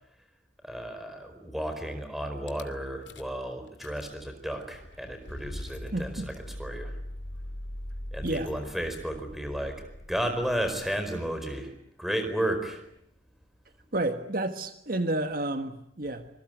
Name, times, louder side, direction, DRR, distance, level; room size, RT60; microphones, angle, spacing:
voice 1, 0.6-7.0 8.1-12.8, right 1 dB, ahead, 6 dB, 4.7 m, -33 dB
Rattle / Car / Engine starting, 2.5-2.6 3.1-3.4 3.7-11.4, left 1 dB, 75° left, 2.6 m, -42 dB
voice 2, 5.9-6.3 8.2-8.5 13.9-16.3, right 1 dB, 50° right, 8 dB, 1.5 m, -30 dB
26.5 x 21.5 x 9.4 m, 0.76 s
head